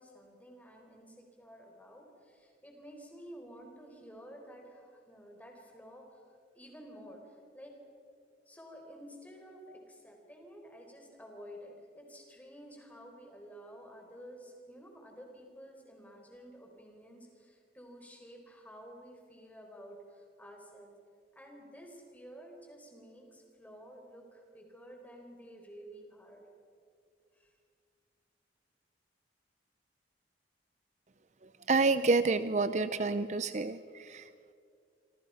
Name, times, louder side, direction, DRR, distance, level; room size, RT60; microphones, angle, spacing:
voice 1, 0.0-6.2 6.5-7.2 7.5-7.7 8.5-20.9 21.3-26.4 27.3-27.5, equal, 10° left, 2 dB, 4.2 m, -52 dB
voice 2, 31.7-34.5, right 3 dB, 40° right, 12 dB, 0.6 m, -29 dB
26.5 x 26.0 x 5.7 m, 2.3 s
head